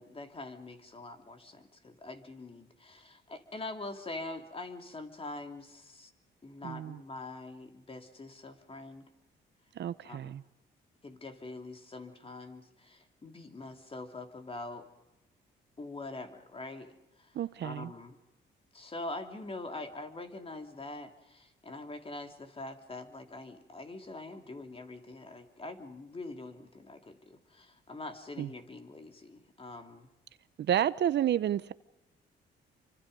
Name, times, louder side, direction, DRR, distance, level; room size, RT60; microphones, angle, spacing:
voice 1, 0.0-6.1 6.4-9.1 10.0-10.3 11.0-14.9 15.8-18.2 18.7-30.1, left 2 dB, 30° left, 3.1 m, -44 dB
voice 2, 6.6-7.0 9.7-10.4 17.3-17.9 28.4-28.5 30.6-31.7, right 10 dB, 60° right, 0.8 m, -30 dB
28.5 x 25.0 x 5.4 m
cardioid pair, 90°, 20 cm